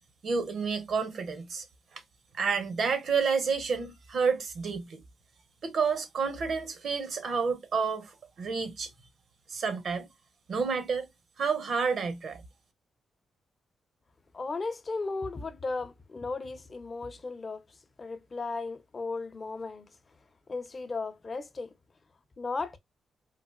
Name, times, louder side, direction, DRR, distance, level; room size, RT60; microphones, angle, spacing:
voice 1, 0.2-1.6 2.4-5.0 5.6-8.9 9.5-10.1 10.5-11.1 11.4-12.4, right 5 dB, 65° right, 1.0 m, -29 dB
voice 2, 14.3-19.9 20.5-21.7 22.4-22.8, left 3 dB, 40° left, 0.7 m, -36 dB
3.9 x 2.4 x 2.4 m
cardioid pair, 80°, 0 cm